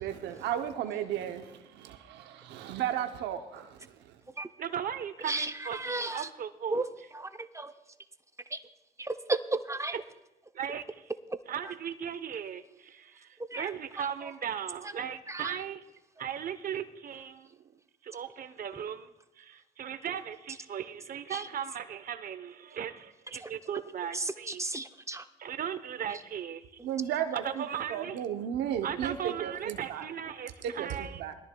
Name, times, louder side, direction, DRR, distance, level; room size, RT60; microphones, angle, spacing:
voice 1, 0.0-4.2 26.8-30.1 30.6-31.3, right 10 dB, 90° right, 6 dB, 0.7 m, -34 dB
voice 2, 4.6-6.8 10.5-11.1 11.5-15.8 16.2-17.7 18.0-24.6 25.4-26.8 27.3-28.2 28.8-31.2, right 8 dB, 55° right, 11 dB, 0.8 m, -37 dB
voice 3, 5.3-6.3 6.7-6.8 7.2-7.7 8.5-8.6 9.0-9.9 13.5-13.7 14.0-14.1 15.3-15.6 21.3-21.4 23.4-23.5 24.1-25.2, right 2 dB, 15° right, 9 dB, 0.6 m, -33 dB
21.0 x 13.0 x 2.2 m, 0.99 s
cardioid pair, 80°, 18 cm